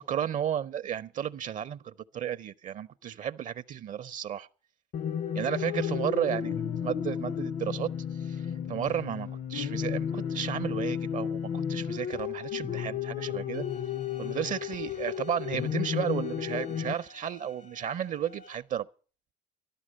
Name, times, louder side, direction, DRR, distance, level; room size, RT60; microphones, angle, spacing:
voice 1, 0.0-4.5 5.3-13.6 14.2-18.9, right 9 dB, 50° right, 0.6 m, -33 dB
sound 1, 4.9-16.9, left 8 dB, 50° left, 0.6 m, -33 dB
Bowed string instrument, 13.5-18.6, left 3 dB, 85° left, 2.4 m, -54 dB
13.5 x 12.5 x 6.3 m
cardioid pair, 110°, 17 cm